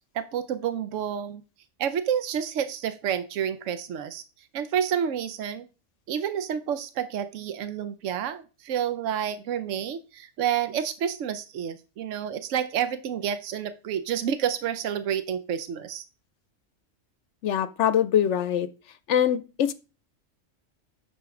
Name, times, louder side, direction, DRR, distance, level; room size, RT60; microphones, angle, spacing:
voice 1, 0.1-1.4 1.8-4.2 4.5-5.7 6.1-16.0, right 9 dB, 80° right, 12 dB, 1.0 m, -29 dB
voice 2, 17.4-18.7 19.1-19.7, left 9 dB, 70° left, 14 dB, 0.9 m, -23 dB
9.0 x 6.1 x 3.7 m, 0.32 s
omnidirectional pair, 1.3 m